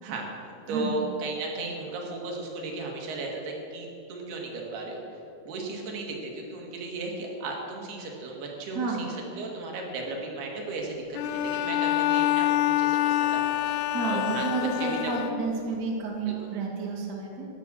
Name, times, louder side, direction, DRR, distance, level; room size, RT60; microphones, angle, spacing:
voice 1, 0.0-5.0 5.4-9.0 9.4-15.1 16.2-16.3, right 2 dB, 75° right, 0 dB, 3.9 m, -35 dB
voice 2, 0.7-1.0 8.7-9.1 13.9-17.5, right 4 dB, 35° right, -1 dB, 1.8 m, -30 dB
Bowed string instrument, 11.2-15.8, left 13 dB, 90° left, 2.6 m, -26 dB
15.0 x 10.5 x 6.4 m, 2.9 s
omnidirectional pair, 4.6 m